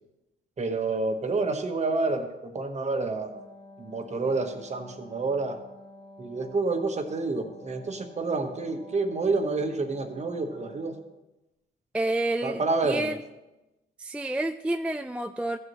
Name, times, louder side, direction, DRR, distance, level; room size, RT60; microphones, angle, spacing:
voice 1, 0.6-3.3 3.8-5.6 6.2-11.0 12.4-13.1, right 3 dB, 35° right, 6 dB, 1.2 m, -28 dB
Wind instrument woodwind instrument, 3.2-11.2, left 1 dB, 25° left, 1.5 m, -50 dB
voice 2, 11.9-13.2 14.0-15.6, right 1 dB, 5° right, 7 dB, 0.3 m, -29 dB
14.5 x 7.8 x 3.1 m, 1.0 s
cardioid pair, 90°, 20 cm